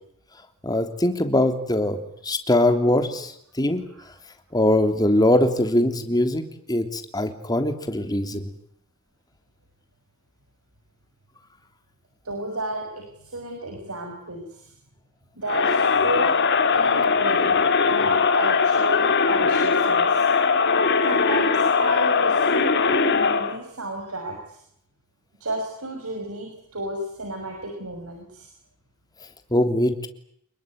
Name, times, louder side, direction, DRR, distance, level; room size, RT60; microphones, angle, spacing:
voice 1, 0.6-2.0 2.2-3.3 3.6-3.8 4.5-6.4 6.7-8.5 29.5-30.1, left 1 dB, 20° left, 7 dB, 3.3 m, -21 dB
voice 2, 12.2-14.7 15.4-16.4 16.7-17.6 17.9-20.3 21.1-24.6 25.4-28.5, right 1 dB, 85° right, 3 dB, 6.2 m, -32 dB
Crowd, 15.5-23.6, left 5 dB, 55° left, 2.6 m, -20 dB
29.5 x 21.0 x 9.4 m, 0.72 s
head